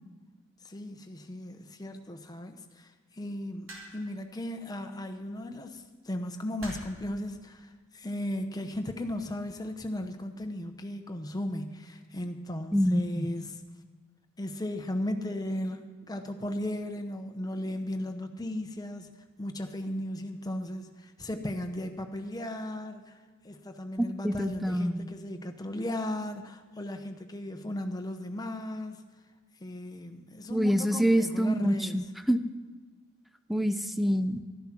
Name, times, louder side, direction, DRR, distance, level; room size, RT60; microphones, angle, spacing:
voice 1, 0.6-13.6 14.4-19.1 19.4-23.2 23.4-29.0 29.6-32.0, left 1 dB, 20° left, 6 dB, 0.9 m, -36 dB
sound 1, 3.7-4.2 5.4-5.7 6.6-7.1 8.0-8.4, right 1 dB, 65° right, 3.1 m, -45 dB
voice 2, 12.7-13.3 24.2-25.1 30.5-32.4 33.5-34.4, equal, ahead, 10 dB, 0.5 m, -26 dB
12.5 x 11.0 x 6.0 m, 1.4 s
head